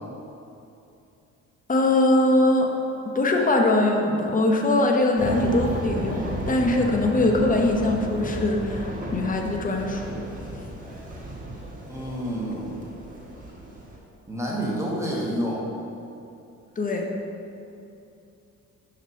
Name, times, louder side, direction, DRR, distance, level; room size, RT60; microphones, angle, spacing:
voice 1, 1.7-2.7 3.1-10.2 16.8-17.0, left 2 dB, 25° left, 2 dB, 0.8 m, -22 dB
sound 1, 5.1-14.0, equal, 25° right, 1.3 m, -34 dB
voice 2, 11.9-12.9 14.3-15.7, equal, 10° right, -5 dB, 1.2 m, -29 dB
5.7 x 3.2 x 5.6 m, 2.7 s
cardioid pair, 90°, 30 cm